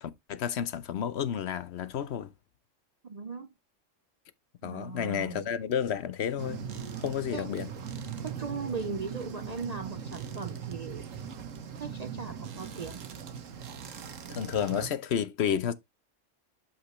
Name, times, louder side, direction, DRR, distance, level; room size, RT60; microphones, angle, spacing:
voice 1, 0.0-2.3 4.6-6.6 7.0-7.7 14.3-15.7, left 8 dB, 65° left, 0.9 m, -31 dB
voice 2, 3.0-3.5 4.6-5.5 7.3-7.5 8.2-11.1 11.8-13.0, right 5 dB, 45° right, 0.5 m, -38 dB
sound 1, 6.4-14.9, right 7 dB, 85° right, 1.4 m, -40 dB
8.2 x 5.9 x 3.1 m
omnidirectional pair, 1.3 m